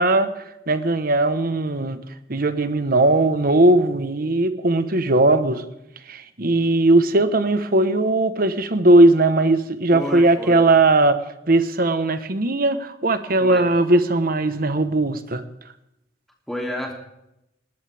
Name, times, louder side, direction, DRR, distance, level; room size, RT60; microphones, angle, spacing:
voice 1, 0.0-2.0 2.3-5.6 6.1-15.4, right 2 dB, 50° right, 10 dB, 1.2 m, -18 dB
voice 2, 9.9-10.6 13.4-13.6 16.5-16.9, equal, ahead, -1 dB, 3.0 m, -30 dB
20.0 x 18.5 x 3.5 m, 0.86 s
head